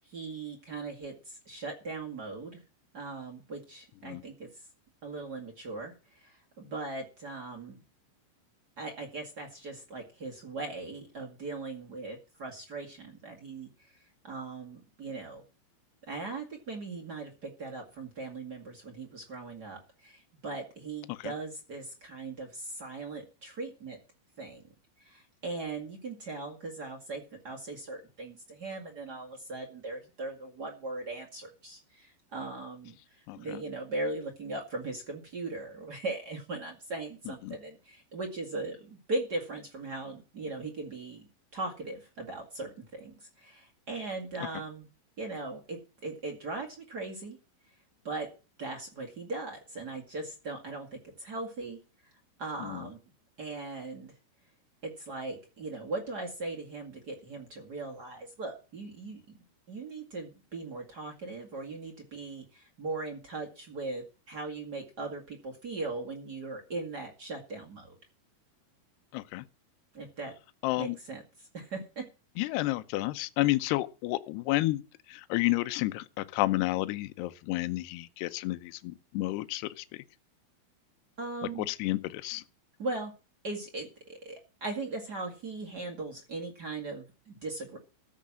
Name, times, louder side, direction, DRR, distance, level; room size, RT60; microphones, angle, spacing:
voice 1, 0.0-2.6 2.9-4.6 5.0-7.8 8.8-15.4 16.1-24.0 24.4-24.6 25.0-41.3 41.5-44.9 45.2-47.4 48.0-48.3 48.6-51.8 52.4-53.0 53.4-54.1 54.8-59.2 59.7-68.0 69.9-70.3 70.8-72.0 81.2-81.7 82.8-83.1 83.4-87.8, right 3 dB, 80° right, 0.9 m, -39 dB
voice 2, 69.1-69.4 70.6-71.0 72.4-74.8 75.1-80.0 81.7-82.4, left 19 dB, 85° left, 2.4 m, -31 dB
14.5 x 6.5 x 7.5 m
omnidirectional pair, 5.8 m